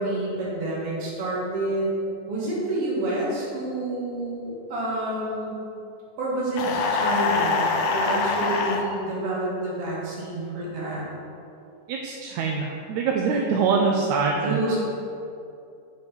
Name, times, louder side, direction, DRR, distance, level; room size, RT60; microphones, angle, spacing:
voice 1, 0.0-1.9 2.3-5.6 6.2-7.7 7.9-11.0 14.4-14.8, right 2 dB, 55° right, -5 dB, 2.5 m, -28 dB
sound 1, 6.6-8.8, left 4 dB, 80° left, 2.0 m, -24 dB
voice 2, 11.9-14.8, right 5 dB, 80° right, 1 dB, 1.8 m, -24 dB
7.8 x 5.2 x 5.3 m, 2.6 s
omnidirectional pair, 3.5 m